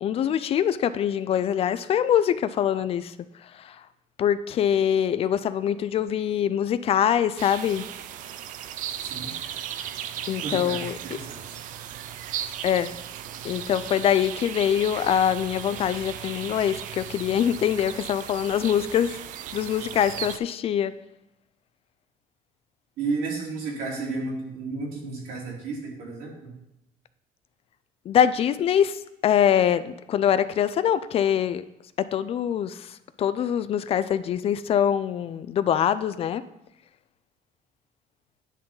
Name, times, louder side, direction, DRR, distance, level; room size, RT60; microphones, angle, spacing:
voice 1, 0.0-3.1 3.4-3.8 4.2-7.9 10.3-11.0 12.6-12.9 13.4-19.2 19.5-20.9 28.1-31.6 32.0-36.4, left 9 dB, 45° left, 14 dB, 0.4 m, -24 dB
sound 1, 7.4-20.4, right 10 dB, 65° right, 0.5 m, -36 dB
voice 2, 10.4-11.4 23.0-26.5, right 3 dB, 85° right, -3 dB, 2.8 m, -32 dB
10.0 x 3.9 x 5.5 m, 0.90 s
cardioid pair, 135°, 14 cm